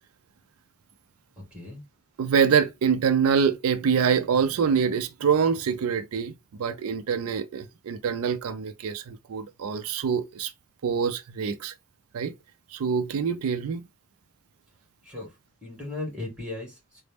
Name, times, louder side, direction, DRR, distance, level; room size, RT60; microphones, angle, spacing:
voice 1, 1.5-1.8 15.0-15.3 15.6-17.0, left 2 dB, 5° right, 1.7 m, -37 dB
voice 2, 2.2-6.3 6.6-10.5 10.8-11.7 12.1-12.3 12.7-13.8, right 6 dB, 85° right, 0.4 m, -25 dB
3.9 x 2.0 x 3.3 m
head